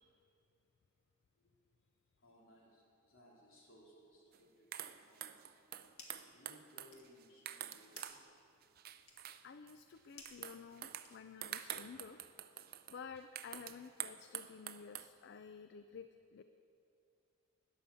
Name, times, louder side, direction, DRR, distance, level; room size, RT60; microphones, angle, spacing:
voice 1, 2.2-5.5 6.3-8.2, equal, 65° left, -4 dB, 3.3 m, -64 dB
sound 1, 4.3-4.4 4.7-8.2 8.6-9.7 10.3-15.1, right 11 dB, 45° right, 0.4 m, -47 dB
sound 2, 5.8-6.4 6.7-11.6, left 4 dB, 85° left, 1.9 m, -61 dB
voice 2, 9.4-12.2 12.9-16.4, left 6 dB, 50° left, 10 dB, 0.4 m, -52 dB
12.0 x 10.0 x 6.9 m, 2.6 s
head